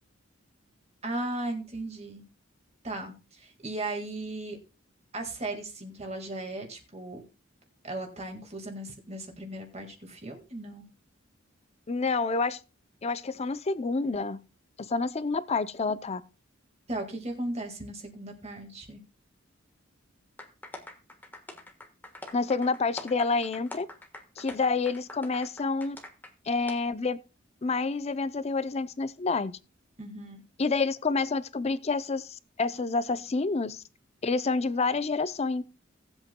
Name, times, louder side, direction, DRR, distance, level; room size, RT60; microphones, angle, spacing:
voice 1, 1.0-2.2 2.8-4.6 5.1-7.2 7.8-10.8 16.9-19.0 30.0-30.4, right 2 dB, 35° right, 1.8 m, -36 dB
voice 2, 11.9-12.6 13.0-14.4 14.8-16.2 22.3-23.9 24.4-26.0 26.5-27.2 27.6-29.6 30.6-33.8 34.2-35.6, left 4 dB, 30° left, 0.5 m, -28 dB
sound 1, 20.4-26.3 26.7-26.8, left 2 dB, 10° left, 1.3 m, -44 dB
18.0 x 8.0 x 2.2 m
head